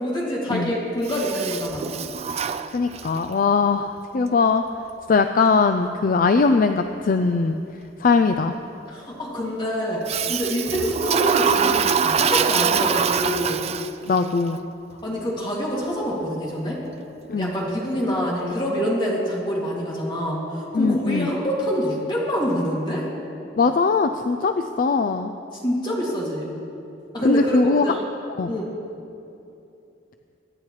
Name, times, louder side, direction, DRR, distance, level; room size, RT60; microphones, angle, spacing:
voice 1, 0.0-1.9 8.9-13.6 15.0-16.8 17.4-23.0 25.6-26.5 27.1-28.0 28.5-28.7, equal, 25° left, -4 dB, 2.5 m, -26 dB
Toilet flush, 1.0-3.3 10.1-14.2, right 7 dB, 35° right, 0.3 m, -24 dB
voice 2, 2.7-4.6 5.1-7.6 8.0-8.5 14.1-14.6 17.3-17.5 20.7-21.3 23.6-25.3 27.2-27.9 28.4-28.5, left 4 dB, 50° left, 8 dB, 0.4 m, -20 dB
23.5 x 10.0 x 3.2 m, 2.8 s
head